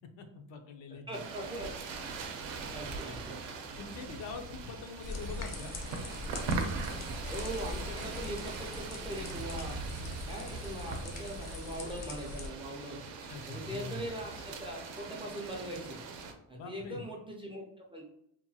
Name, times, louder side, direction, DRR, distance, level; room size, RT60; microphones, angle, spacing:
voice 1, 0.2-1.2 3.8-5.8 13.2-14.1 16.5-17.0, left 4 dB, 80° left, 5 dB, 0.6 m, -44 dB
voice 2, 1.1-1.7 2.7-3.5 7.3-9.8 10.3-13.0 13.5-16.0 16.5-18.1, right 1 dB, 15° right, -2 dB, 0.3 m, -41 dB
sound 1, 1.1-16.3, right 4 dB, 75° right, 0.6 m, -40 dB
sound 2, 5.0-12.5, left 3 dB, 40° left, 0.5 m, -42 dB
2.9 x 2.2 x 2.6 m, 0.75 s
cardioid pair, 130°, 43 cm